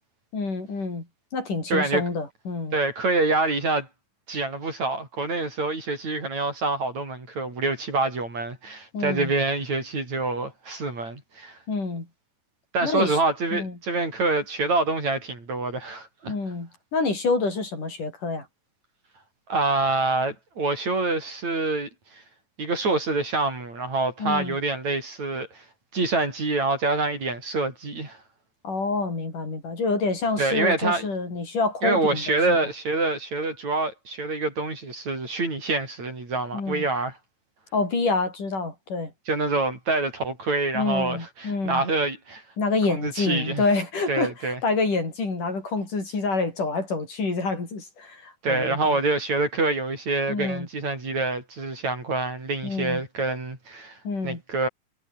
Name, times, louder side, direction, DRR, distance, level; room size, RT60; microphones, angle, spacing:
voice 1, 0.3-1.1 1.3-2.8 8.9-9.3 11.7-12.1 12.8-13.2 13.5-13.8 16.3-18.5 24.2-24.6 28.6-32.6 36.5-36.9 37.7-39.1 40.7-41.8 42.6-49.0 50.3-50.7 52.6-53.0 54.1-54.4, left 3 dB, 60° left, 8.9 m, -27 dB
voice 2, 1.7-2.0 2.7-3.9 4.3-11.6 12.7-16.3 19.5-21.9 22.6-25.6 25.9-28.2 30.4-31.1 31.8-37.1 39.3-42.4 42.9-43.6 44.1-44.6 48.4-54.0 54.2-54.7, right 3 dB, 50° right, 8.4 m, -26 dB
omnidirectional pair, 4.1 m